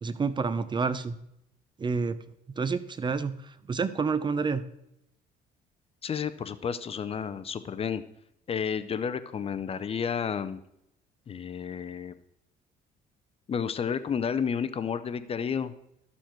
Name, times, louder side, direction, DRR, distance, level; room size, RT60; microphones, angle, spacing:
voice 1, 0.0-1.2 1.8-2.1 2.6-3.4 3.7-4.6, right 5 dB, 25° right, 14 dB, 0.6 m, -28 dB
voice 2, 6.0-8.0 8.5-10.6 11.3-12.1 13.5-15.7, left 7 dB, 35° left, 12 dB, 0.6 m, -31 dB
13.0 x 7.1 x 4.5 m, 0.80 s
cardioid pair, 110°, 17 cm